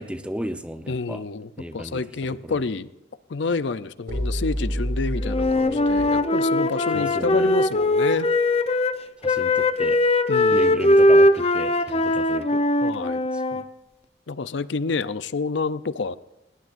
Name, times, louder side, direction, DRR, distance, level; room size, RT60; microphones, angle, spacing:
voice 1, 0.0-1.2 1.6-2.6 6.9-7.6 9.2-10.0 10.5-12.6 13.3-13.6, equal, 5° right, 8 dB, 0.8 m, -34 dB
voice 2, 0.9-2.9 3.3-8.3 10.3-10.9 12.8-13.2 14.3-16.2, left 4 dB, 65° left, 15 dB, 0.6 m, -28 dB
sound 1, 4.1-8.8, left 1 dB, 50° right, 6.3 m, -31 dB
Wind instrument woodwind instrument, 5.2-9.0 9.2-13.6, left 1 dB, 30° left, 0.7 m, -20 dB
21.0 x 18.5 x 2.6 m, 0.99 s
head